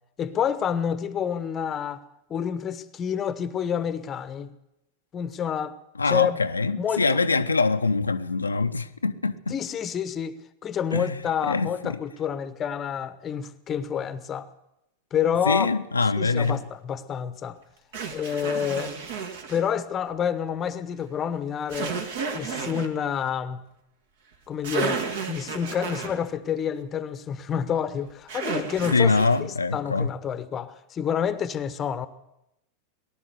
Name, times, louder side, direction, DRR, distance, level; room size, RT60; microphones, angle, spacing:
voice 1, 0.2-2.0 2.3-4.5 5.1-5.8 6.1-6.4 6.8-7.2 9.5-14.5 15.1-15.7 16.2-17.6 18.1-19.0 19.5-22.0 22.3-23.6 24.5-29.1 29.4-32.1, left 8 dB, 25° left, 0.9 m, -28 dB
voice 2, 6.0-9.5 10.9-12.0 15.5-16.6 28.9-30.1, left 4 dB, 80° left, 0.6 m, -24 dB
sound 1, 16.4-16.6 17.9-19.6 21.7-22.9 24.3-24.4 24.6-26.2 28.3-29.4, right 5 dB, 55° right, 1.7 m, -32 dB
19.0 x 11.5 x 6.7 m
figure-of-eight pair, 90°, 0 cm